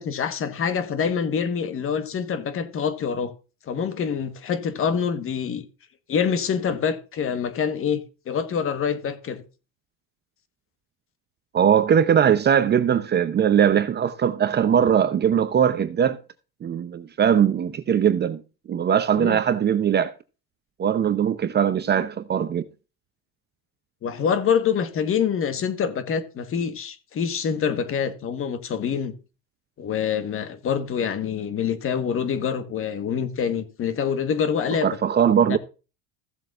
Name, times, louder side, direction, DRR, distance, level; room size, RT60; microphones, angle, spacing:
voice 1, 0.0-3.3 3.7-5.6 6.1-9.4 19.2-19.4 24.0-29.1 29.8-34.9 35.5-35.6, left 7 dB, 35° left, 1.4 m, -26 dB
voice 2, 11.5-16.2 16.6-18.4 18.7-20.1 20.8-22.6 34.8-35.6, right 8 dB, 30° right, 0.7 m, -20 dB
15.5 x 7.6 x 2.5 m
cardioid pair, 130°, 37 cm